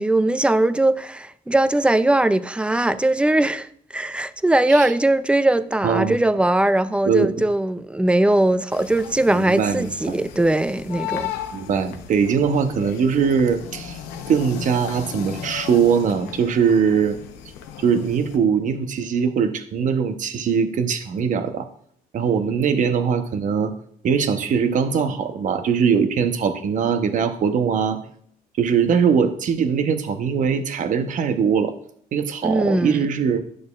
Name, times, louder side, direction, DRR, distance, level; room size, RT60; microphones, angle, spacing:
voice 1, 0.0-11.3 32.4-33.1, right 1 dB, 5° right, 0.3 m, -20 dB
voice 2, 5.8-6.2 7.0-7.3 9.3-10.2 11.5-14.0 14.3-17.2 17.8-21.7 22.1-23.7 24.0-28.0 28.6-31.7 32.1-33.4, right 6 dB, 50° right, 0.8 m, -21 dB
sound 1, 8.7-18.4, left 9 dB, 90° left, 0.8 m, -36 dB
11.0 x 6.5 x 2.3 m
cardioid pair, 110°, 17 cm